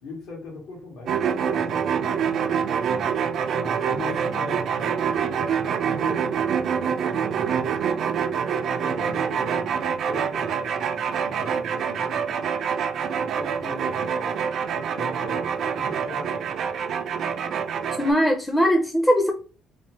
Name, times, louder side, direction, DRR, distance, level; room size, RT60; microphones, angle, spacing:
voice 1, 0.0-3.0 3.5-7.8 8.7-12.5 13.1-14.4 14.7-16.5, left 3 dB, 75° left, -1 dB, 1.4 m, -40 dB
sound 1, 1.1-18.1, right 7 dB, 60° right, 0.4 m, -26 dB
voice 2, 18.0-19.3, equal, 10° left, 2 dB, 0.5 m, -20 dB
3.1 x 3.1 x 3.0 m, 0.36 s
cardioid pair, 95°, 0 cm